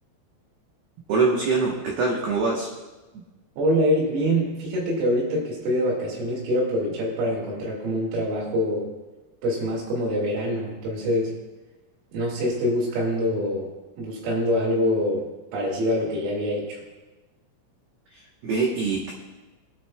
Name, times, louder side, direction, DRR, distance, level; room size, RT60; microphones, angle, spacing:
voice 1, 1.1-2.8 18.1-19.1, right 4 dB, 70° right, -2 dB, 2.4 m, -24 dB
voice 2, 3.6-8.9 9.4-11.3 12.1-13.7 14.0-16.8, equal, 90° right, -7 dB, 4.9 m, -25 dB
25.5 x 9.1 x 2.3 m, 1.1 s
omnidirectional pair, 6.0 m